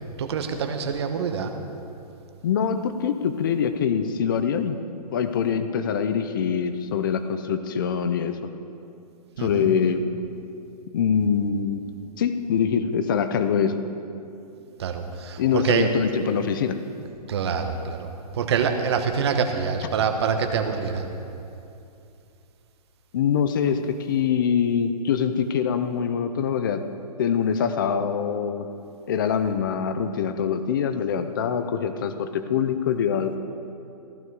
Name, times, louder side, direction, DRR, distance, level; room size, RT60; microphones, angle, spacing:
voice 1, 0.2-1.5 9.4-9.7 14.8-15.9 17.3-18.1 18.3-21.1, right 6 dB, 40° right, 6 dB, 1.1 m, -25 dB
voice 2, 2.4-4.8 5.1-8.4 9.4-10.0 10.9-11.8 12.2-13.8 15.4-16.8 23.1-26.8 27.2-28.7 29.1-33.4, left 7 dB, 30° left, 9 dB, 0.6 m, -24 dB
15.0 x 13.0 x 4.7 m, 2.7 s
hypercardioid pair, 170°, 21 cm